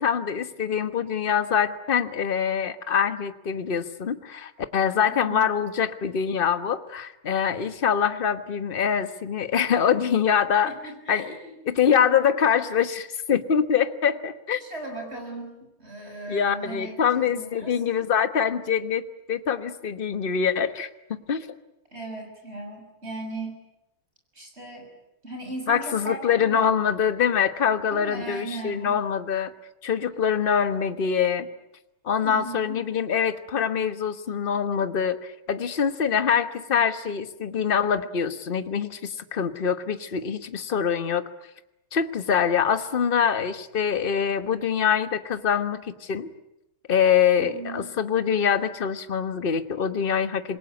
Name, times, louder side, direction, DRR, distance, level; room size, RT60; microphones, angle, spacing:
voice 1, 0.0-10.7 11.1-11.2 11.7-14.6 16.3-21.5 25.7-29.5 29.8-31.5 32.0-41.2 41.9-46.3 46.9-50.6, left 7 dB, 35° left, 10 dB, 1.1 m, -24 dB
voice 2, 5.1-5.5 10.6-11.8 14.6-17.7 21.9-23.6 24.4-24.9 25.2-26.7 27.9-29.0 32.2-32.8 47.4-47.9, right 2 dB, 30° right, 4 dB, 6.9 m, -37 dB
27.0 x 21.5 x 9.6 m, 0.90 s
omnidirectional pair, 2.3 m